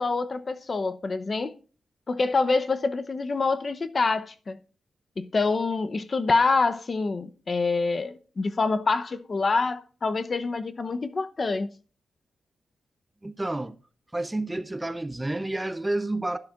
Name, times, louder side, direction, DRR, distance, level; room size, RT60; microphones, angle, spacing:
voice 1, 0.0-1.5 2.1-4.6 5.2-11.7, left 3 dB, 35° left, 0.8 m, -26 dB
voice 2, 13.2-13.8 14.1-16.4, right 2 dB, 10° right, 0.5 m, -29 dB
12.0 x 10.5 x 2.4 m
wide cardioid pair, 160°, 0 cm